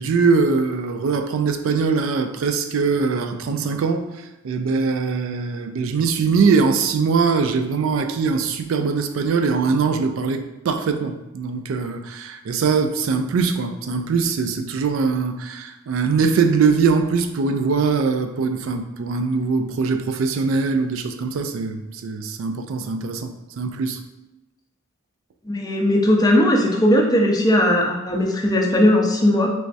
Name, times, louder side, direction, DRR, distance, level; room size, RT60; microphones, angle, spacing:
voice 1, 0.0-4.0 4.4-24.0, right 5 dB, 70° right, 8 dB, 0.3 m, -22 dB
voice 2, 25.5-29.5, left 1 dB, 20° left, 1 dB, 0.4 m, -18 dB
3.4 x 3.0 x 2.7 m, 0.97 s
head